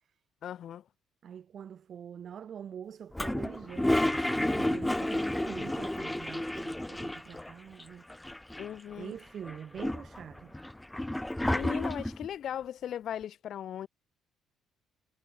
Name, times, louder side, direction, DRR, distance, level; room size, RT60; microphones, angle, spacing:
voice 1, 0.4-0.8 8.6-9.2 11.5-13.9, left 10 dB, 60° left, 0.6 m, -38 dB
voice 2, 1.2-8.1 8.9-10.7, right 8 dB, 50° right, 5.9 m, -45 dB
Toilet flush, 3.1-7.5 7.8-7.9 8.1-8.9 9.4-12.3, left 1 dB, 5° left, 0.9 m, -31 dB
cardioid pair, 100°, 0 cm